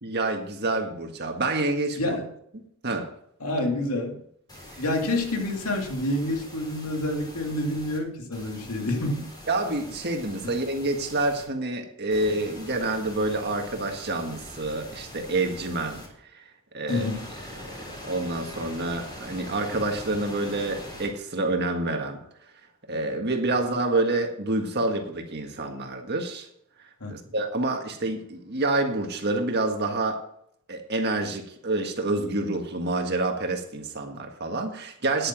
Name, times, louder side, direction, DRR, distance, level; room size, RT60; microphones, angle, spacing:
voice 1, 0.0-2.2 2.8-3.1 9.5-16.0 16.3-17.1 17.7-22.2 22.9-26.5 27.1-30.2 30.7-35.3, right 2 dB, 50° right, 1.7 m, -28 dB
voice 2, 1.9-2.3 3.4-4.2 4.8-9.3 16.9-17.3 27.0-27.2 35.2-35.3, left 1 dB, 85° left, 2.4 m, -28 dB
sound 1, 4.5-8.0 8.3-11.4 12.1-16.1 16.9-21.1, left 1 dB, 20° left, 3.7 m, -43 dB
10.0 x 8.8 x 6.0 m
head